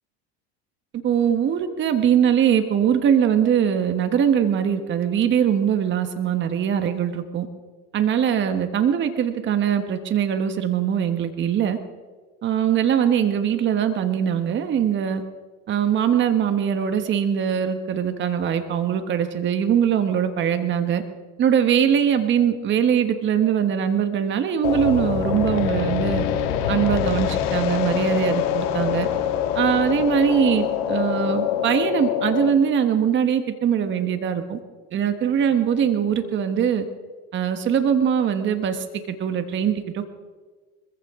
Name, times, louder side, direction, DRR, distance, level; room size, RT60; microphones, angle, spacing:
voice 1, 1.0-7.5 7.9-11.8 12.4-15.2 15.7-21.0 21.4-26.2 26.7-29.1 29.5-34.6 34.9-36.8 37.3-40.1, right 8 dB, 40° right, 8 dB, 1.3 m, -22 dB
sound 1, 24.6-32.5, left 9 dB, 70° left, 1.9 m, -24 dB
24.5 x 15.0 x 3.7 m, 1.4 s
supercardioid pair, 100°, 30 cm